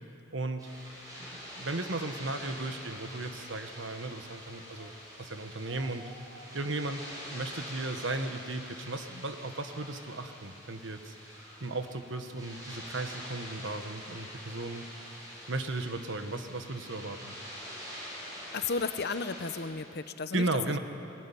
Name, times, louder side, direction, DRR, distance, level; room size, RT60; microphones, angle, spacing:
voice 1, 0.3-0.7 1.5-4.9 5.2-6.0 6.5-7.0 7.3-11.1 11.6-14.8 15.5-17.4 20.3-20.8, right 2 dB, 70° right, 7 dB, 1.4 m, -35 dB
sound 1, 0.6-19.6, equal, 20° right, 7.6 m, -45 dB
voice 2, 18.5-20.8, left 4 dB, 60° left, 11 dB, 0.9 m, -34 dB
21.0 x 20.5 x 10.0 m, 2.9 s
head